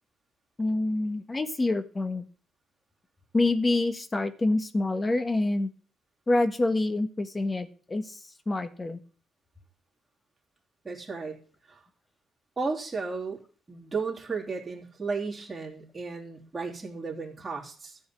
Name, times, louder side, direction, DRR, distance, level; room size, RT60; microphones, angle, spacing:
voice 1, 0.6-2.3 3.3-5.7 6.3-9.0, left 2 dB, 25° left, 10 dB, 1.4 m, -27 dB
voice 2, 10.8-11.4 11.7-11.8 12.6-13.4 13.7-18.0, right 4 dB, 25° right, -4 dB, 3.1 m, -34 dB
13.0 x 5.4 x 8.4 m, 0.42 s
cardioid pair, 90°, 0 cm